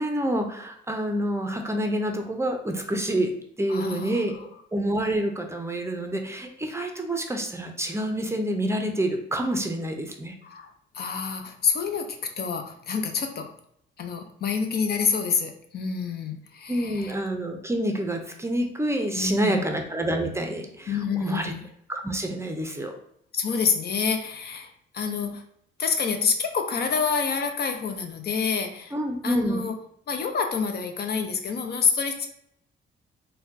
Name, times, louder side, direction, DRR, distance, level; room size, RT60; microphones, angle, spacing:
voice 1, 0.0-4.4 4.7-10.3 16.7-21.5 21.9-22.9 28.9-29.7, right 1 dB, 15° right, 4 dB, 0.5 m, -27 dB
voice 2, 3.7-4.2 10.4-13.5 14.0-17.1 19.1-19.7 20.9-21.6 23.3-25.4 25.8-28.9 29.2-29.8 30.1-32.3, left 5 dB, 55° left, 6 dB, 0.6 m, -27 dB
4.2 x 2.2 x 2.6 m, 0.72 s
cardioid pair, 90°, 20 cm